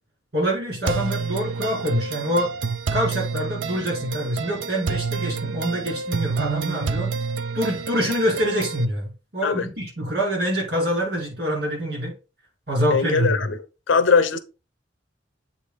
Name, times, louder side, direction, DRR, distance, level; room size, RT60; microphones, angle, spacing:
voice 1, 0.3-2.5 2.9-7.1 7.5-12.1 12.7-13.5, equal, 55° right, 4.4 m, -25 dB
sound 1, 0.8-8.8, right 5 dB, 90° right, 0.5 m, -28 dB
voice 2, 12.9-13.6 13.9-14.4, left 5 dB, 85° left, 0.8 m, -20 dB
8.1 x 3.5 x 4.0 m
head